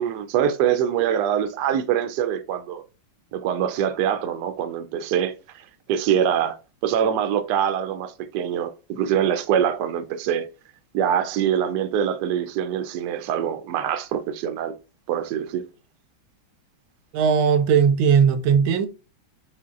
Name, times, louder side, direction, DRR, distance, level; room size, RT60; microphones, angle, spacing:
voice 1, 0.0-2.8 3.3-6.6 6.8-10.5 10.9-14.7 15.1-15.7, right 9 dB, 70° right, 1.0 m, -24 dB
voice 2, 17.1-18.9, right 7 dB, 90° right, 1.4 m, -18 dB
4.2 x 3.8 x 2.4 m
omnidirectional pair, 2.2 m